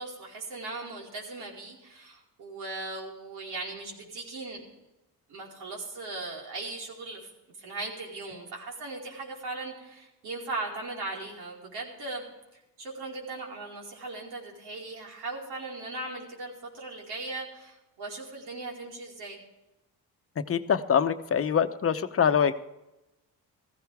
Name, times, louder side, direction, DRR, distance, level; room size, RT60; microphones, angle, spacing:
voice 1, 0.0-4.6 5.3-7.2 7.6-12.2 12.8-19.4, right 3 dB, 80° right, -2 dB, 4.7 m, -38 dB
voice 2, 20.5-22.5, left 7 dB, 35° left, 10 dB, 0.9 m, -24 dB
15.5 x 15.5 x 3.5 m, 0.95 s
cardioid pair, 100°, 38 cm